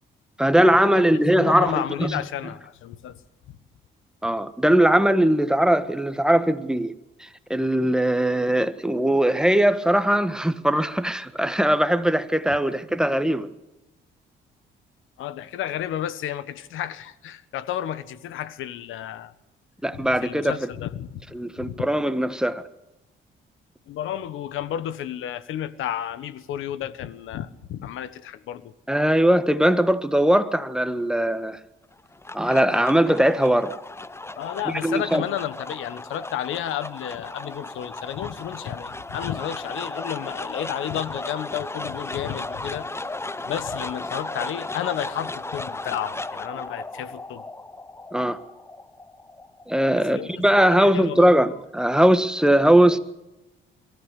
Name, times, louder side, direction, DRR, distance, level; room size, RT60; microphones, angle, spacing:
voice 1, 0.4-2.2 4.2-6.9 7.2-13.5 19.8-20.7 21.3-22.6 28.9-31.6 32.3-33.7 34.8-35.2 48.1-48.4 49.7-53.0, right 1 dB, 5° right, 1.5 m, -20 dB
voice 2, 1.4-3.2 15.2-19.3 19.9-21.2 21.6-21.8 23.9-28.7 34.4-42.9 43.5-47.4 49.9-51.3, left 11 dB, 85° left, 1.3 m, -32 dB
sound 1, 31.9-50.3, left 2 dB, 15° left, 0.8 m, -35 dB
23.5 x 14.0 x 8.3 m
cardioid pair, 90°, 20 cm